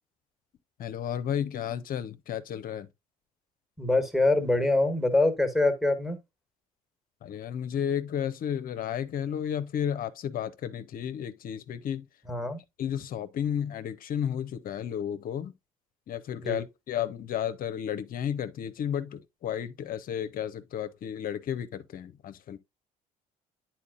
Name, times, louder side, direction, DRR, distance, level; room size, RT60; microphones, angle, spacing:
voice 1, 0.8-2.9 7.2-12.1 12.8-15.5 16.1-22.6, left 9 dB, 50° left, 0.6 m, -32 dB
voice 2, 3.8-6.2 12.3-12.6 16.4-16.6, left 2 dB, ahead, 1.4 m, -24 dB
9.5 x 4.4 x 2.4 m
hypercardioid pair, 55°, 19 cm